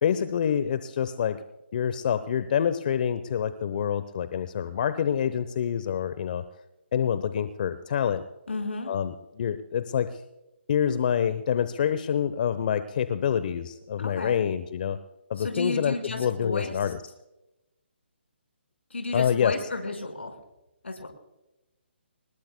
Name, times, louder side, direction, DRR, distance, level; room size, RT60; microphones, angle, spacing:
voice 1, 0.0-1.4 1.7-6.4 6.9-8.2 8.9-10.1 10.7-15.0 15.3-17.0 19.1-19.5, left 8 dB, 45° left, 13 dB, 0.8 m, -26 dB
voice 2, 8.5-8.9 14.0-14.4 15.4-16.9 18.9-20.4 20.8-21.1, left 2 dB, 85° left, 3 dB, 5.1 m, -33 dB
25.5 x 20.5 x 2.2 m, 0.95 s
hypercardioid pair, 150°, 6 cm